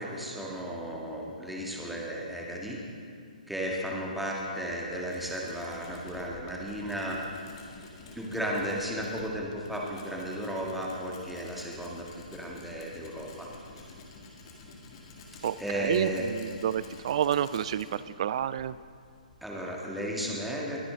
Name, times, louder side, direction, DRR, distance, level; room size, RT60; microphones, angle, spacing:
voice 1, 0.0-2.8 3.5-7.2 8.1-12.1 12.3-13.5 13.8-13.9 15.6-16.3 19.4-20.8, equal, ahead, -3 dB, 1.7 m, -34 dB
Tools, 4.7-19.8, left 3 dB, 40° left, 2.2 m, -50 dB
voice 2, 15.4-18.8, right 10 dB, 45° right, 17 dB, 0.4 m, -29 dB
21.0 x 9.5 x 3.8 m, 2.2 s
figure-of-eight pair, 125°, 5 cm